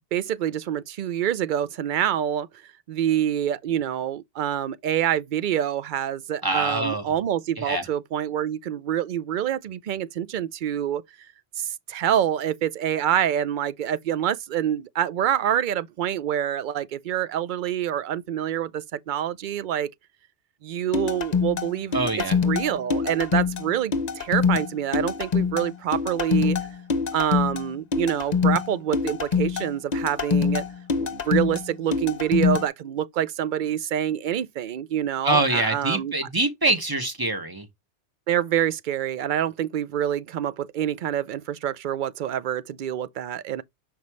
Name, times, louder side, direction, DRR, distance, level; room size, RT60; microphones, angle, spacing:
voice 1, 0.1-2.5 2.9-11.3 11.6-19.9 20.6-22.0 22.4-26.6 27.1-30.6 31.0-36.1 38.3-43.6, right 10 dB, 55° right, 0.6 m, -26 dB
voice 2, 6.4-7.1 7.6-7.9 21.9-22.4 35.2-37.7, right 2 dB, 20° right, 1.3 m, -24 dB
sound 1, 20.9-32.7, left 5 dB, 40° left, 0.8 m, -25 dB
6.0 x 5.3 x 3.1 m
omnidirectional pair, 1.2 m